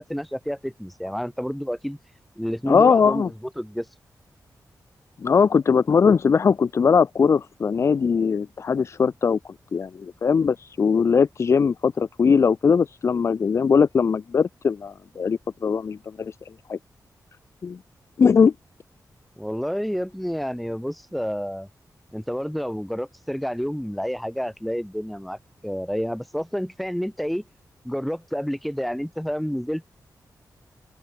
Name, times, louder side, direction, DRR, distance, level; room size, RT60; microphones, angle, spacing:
voice 1, 0.0-2.0 2.4-3.9 19.4-21.7 22.1-25.4 25.6-27.5 27.8-29.8, equal, ahead, 0.6 m, -29 dB
voice 2, 2.7-3.3 5.2-9.4 9.7-16.4 16.7-16.8 17.6-17.8 18.2-18.5, left 6 dB, 40° left, 0.4 m, -20 dB
open air
wide cardioid pair, 165°, 7 cm